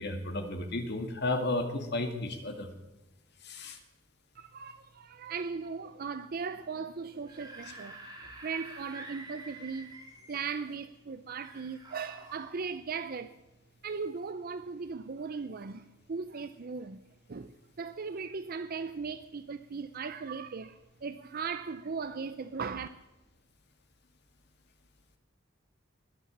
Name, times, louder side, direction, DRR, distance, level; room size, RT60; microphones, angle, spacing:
voice 1, 0.0-2.7 3.4-3.8, left 2 dB, 55° left, 2.1 m, -33 dB
voice 2, 4.3-8.0 8.4-9.9 10.3-13.3 13.8-17.0 17.3-22.9, right 5 dB, 45° right, 0.5 m, -38 dB
Screaming / Screech, 7.1-10.5 11.4-12.5, right 2 dB, 20° right, 3.3 m, -48 dB
20.5 x 8.5 x 7.3 m
head